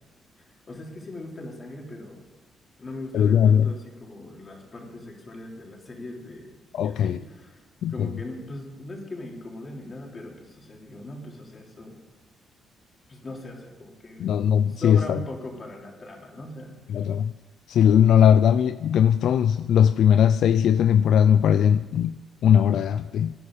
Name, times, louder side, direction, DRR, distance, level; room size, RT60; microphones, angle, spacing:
voice 1, 0.4-2.3 2.8-6.5 6.8-7.6 7.9-12.0 13.1-17.1, left 1 dB, 35° left, 0 dB, 4.0 m, -40 dB
voice 2, 3.1-3.7 6.7-7.2 7.8-8.1 14.2-15.2 16.9-17.3 17.7-23.3, left 8 dB, 70° left, 12 dB, 0.4 m, -19 dB
19.5 x 11.0 x 5.0 m, 1.2 s
cardioid pair, 90°, 0 cm